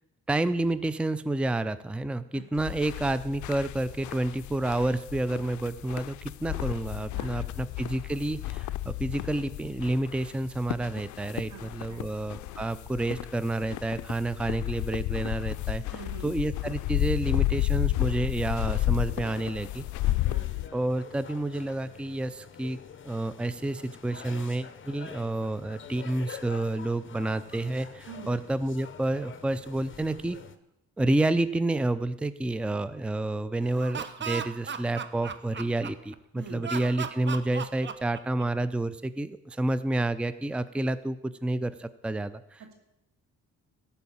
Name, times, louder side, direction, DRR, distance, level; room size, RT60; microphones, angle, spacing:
voice 1, 0.3-15.8 16.2-19.8 20.7-22.8 23.0-30.4 31.0-42.7, right 2 dB, 5° right, 14 dB, 0.5 m, -29 dB
sound 1, 2.6-20.7, left 16 dB, 75° left, 0.5 m, -32 dB
voice 2, 7.1-7.4 11.5-12.1 15.9-16.3 20.0-20.5 28.1-28.3 36.3-36.6, right 5 dB, 85° right, 4 dB, 2.7 m, -44 dB
sound 2, 17.9-30.6, left 7 dB, 40° left, 1.0 m, -47 dB
Laughter, 33.7-36.2 36.6-38.7, right 6 dB, 40° right, 0.9 m, -36 dB
14.5 x 5.7 x 8.5 m, 0.89 s
cardioid pair, 90°, 30 cm